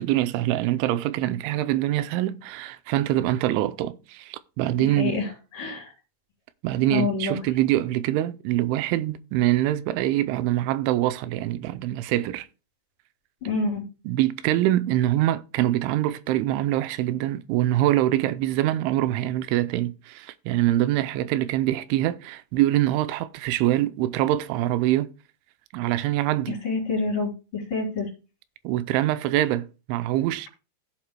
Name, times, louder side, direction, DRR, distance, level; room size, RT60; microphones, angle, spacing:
voice 1, 0.0-5.1 6.6-12.5 14.1-25.1 25.7-26.6 28.6-30.5, right 14 dB, 85° right, 3.1 m, -24 dB
voice 2, 4.8-5.3 5.5-5.9 6.9-7.4 13.4-13.8 26.6-28.1, left 3 dB, 30° left, 5.4 m, -27 dB
16.0 x 7.7 x 2.2 m
omnidirectional pair, 5.4 m